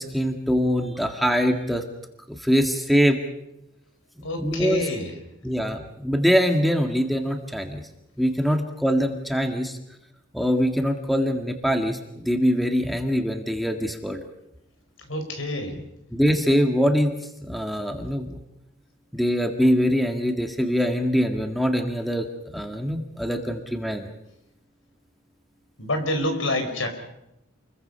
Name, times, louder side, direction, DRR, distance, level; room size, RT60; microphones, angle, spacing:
voice 1, 0.0-1.9 2.3-3.2 4.2-4.8 5.4-7.8 8.2-9.8 10.3-14.2 16.1-17.2 17.4-18.3 19.1-22.3 22.5-24.1, equal, ahead, 4 dB, 1.9 m, -23 dB
voice 2, 4.2-5.2 15.1-15.8 25.8-26.9, left 1 dB, 80° left, 6 dB, 4.9 m, -27 dB
29.0 x 22.0 x 5.7 m, 0.83 s
head